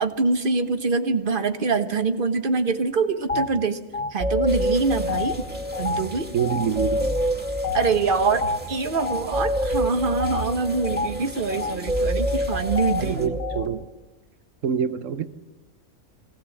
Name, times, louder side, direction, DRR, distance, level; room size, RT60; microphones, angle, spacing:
voice 1, 0.0-3.8 4.1-5.4 5.8-6.3 7.7-13.4, right 4 dB, 40° right, 1.3 m, -24 dB
sound 1, 3.3-3.5 3.9-13.7, left 1 dB, 30° left, 2.5 m, -26 dB
sound 2, 4.5-13.3, right 1 dB, 5° right, 2.2 m, -42 dB
voice 2, 6.3-7.2 13.0-13.9 14.6-15.3, right 8 dB, 70° right, 1.3 m, -26 dB
22.5 x 17.5 x 7.1 m
omnidirectional pair, 1.4 m